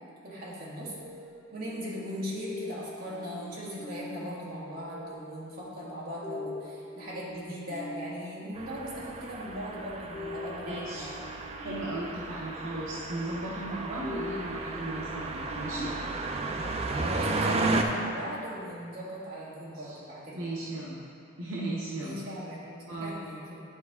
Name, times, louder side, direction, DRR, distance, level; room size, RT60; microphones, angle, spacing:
voice 1, 0.2-0.9 1.5-11.2 17.0-20.5 22.0-23.6, equal, 45° right, -7 dB, 1.6 m, -39 dB
sound 1, 0.9-17.2, left 2 dB, 15° left, 1.4 m, -44 dB
sound 2, 8.6-17.8, right 3 dB, 30° right, 0.4 m, -33 dB
voice 2, 10.7-11.1 11.6-15.9 19.8-20.0 20.3-21.0 21.4-22.2 22.9-23.1, right 2 dB, 75° right, -5 dB, 0.8 m, -36 dB
10.5 x 4.4 x 3.6 m, 2.6 s
head